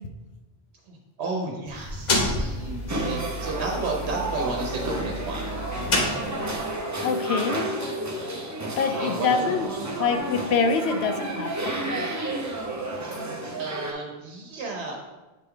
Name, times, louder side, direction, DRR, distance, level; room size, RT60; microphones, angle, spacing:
voice 1, 0.9-5.5 5.8-6.0 8.6-10.0 13.2-15.2, right 3 dB, 90° right, 0 dB, 1.1 m, -33 dB
sound 1, 1.7-6.8, left 1 dB, 45° left, 0.9 m, -30 dB
sound 2, 2.9-13.9, right 1 dB, 20° right, 0.6 m, -31 dB
voice 2, 7.0-7.7 8.8-9.7 10.0-12.1, left 5 dB, 80° left, 7 dB, 0.9 m, -25 dB
8.0 x 3.4 x 3.6 m, 1.1 s
omnidirectional pair, 1.1 m